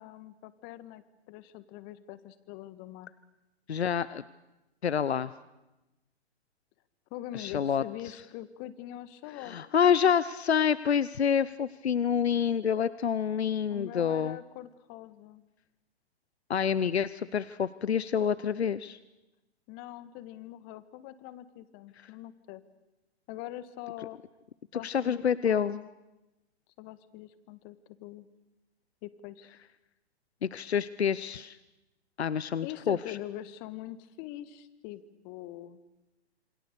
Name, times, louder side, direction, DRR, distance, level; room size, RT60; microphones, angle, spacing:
voice 1, 0.0-3.1 7.1-9.6 13.7-15.4 19.7-22.6 23.3-24.2 24.7-25.9 26.8-28.3 29.0-29.5 32.6-35.8, left 14 dB, 30° left, 15 dB, 1.6 m, -43 dB
voice 2, 3.7-4.2 4.8-5.3 7.3-7.8 9.4-14.4 16.5-19.0 24.8-25.8 30.4-31.6 32.2-33.2, left 7 dB, 75° left, 17 dB, 0.8 m, -27 dB
27.5 x 26.0 x 6.8 m, 1.0 s
figure-of-eight pair, 120°, 33 cm